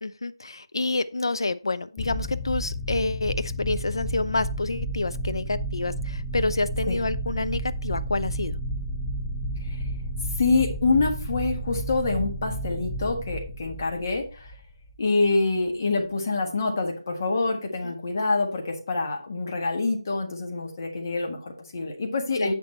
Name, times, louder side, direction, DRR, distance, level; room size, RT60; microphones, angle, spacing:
voice 1, 0.0-8.6 17.8-17.9 22.4-22.5, left 3 dB, 60° left, 13 dB, 0.7 m, -28 dB
sound 1, 2.0-15.0, right 1 dB, 5° left, 0.4 m, -32 dB
voice 2, 10.4-14.6 15.0-22.5, left 3 dB, 35° left, 3 dB, 1.5 m, -26 dB
8.3 x 6.1 x 4.4 m, 0.37 s
figure-of-eight pair, 165°, 3 cm